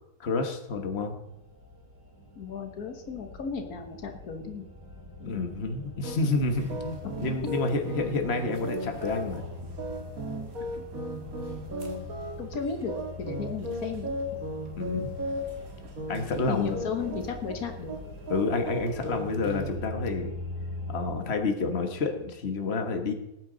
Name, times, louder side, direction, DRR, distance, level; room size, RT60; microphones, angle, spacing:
voice 1, 0.2-1.1 5.2-9.4 14.8-15.1 16.1-16.8 18.3-20.4 20.9-23.1, left 3 dB, 45° left, 5 dB, 1.6 m, -29 dB
sound 1, 1.2-21.1, left 1 dB, 15° left, 4.6 m, -43 dB
voice 2, 2.4-4.6 5.2-5.4 12.4-14.2 16.5-18.0, left 5 dB, 85° left, 5 dB, 1.7 m, -34 dB
sound 2, 6.0-19.7, equal, 75° right, 2.2 m, -37 dB
19.0 x 9.4 x 3.9 m, 0.88 s
omnidirectional pair, 1.5 m